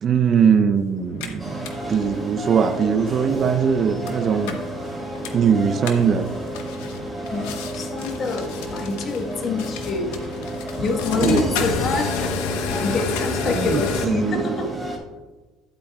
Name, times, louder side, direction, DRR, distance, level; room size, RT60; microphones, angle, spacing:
voice 1, 0.0-4.6 5.3-6.3 11.2-11.6 13.4-14.8, right 6 dB, 40° right, 0.6 m, -21 dB
sound 1, 1.0-14.1, left 5 dB, 85° left, 1.0 m, -31 dB
sound 2, 1.4-15.0, right 1 dB, 5° left, 2.9 m, -32 dB
voice 2, 7.3-10.1 10.8-12.1 12.8-14.7, left 3 dB, 40° left, 1.4 m, -26 dB
11.5 x 8.3 x 2.4 m
supercardioid pair, 110°, 0 cm